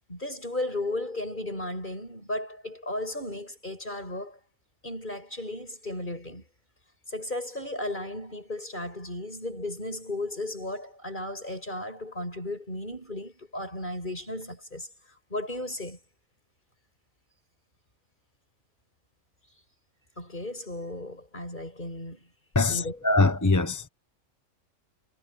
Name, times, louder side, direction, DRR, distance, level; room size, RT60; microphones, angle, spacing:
voice 1, 0.1-4.4 4.8-6.5 7.1-14.9 15.3-16.0 20.2-22.3 22.6-23.1, left 1 dB, 40° left, 7.8 m, -35 dB
voice 2, 22.5-23.9, left 3 dB, 15° left, 0.9 m, -23 dB
omnidirectional pair, 1.3 m